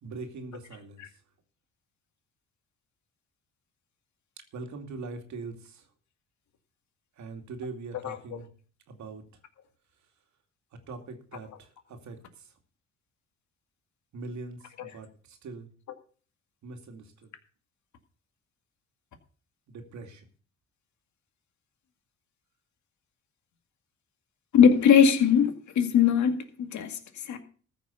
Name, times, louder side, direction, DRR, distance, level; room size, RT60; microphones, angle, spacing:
voice 1, 0.0-1.1 4.5-5.9 7.2-8.5 8.9-9.2 10.9-12.5 14.1-15.7 16.6-17.3 19.7-20.3, right 3 dB, 70° right, 2.6 m, -42 dB
voice 2, 24.5-27.4, left 7 dB, 70° left, 2.2 m, -21 dB
14.5 x 6.3 x 6.9 m
cardioid pair, 90°, 30 cm